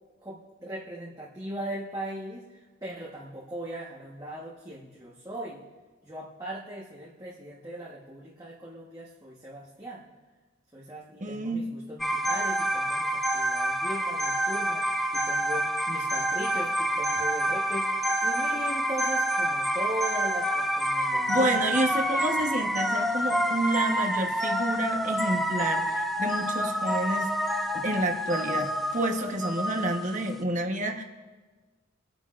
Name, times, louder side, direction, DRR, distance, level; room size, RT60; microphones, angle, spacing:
voice 1, 0.2-5.6 6.0-10.1 10.7-17.9 18.2-21.7, right 1 dB, 20° right, -5 dB, 1.3 m, -39 dB
voice 2, 11.2-11.7 21.0-27.3 27.7-31.0, right 1 dB, 35° right, 3 dB, 1.2 m, -29 dB
sound 1, 12.0-30.4, right 1 dB, ahead, 0.4 m, -28 dB
27.0 x 9.5 x 2.5 m, 1.3 s
head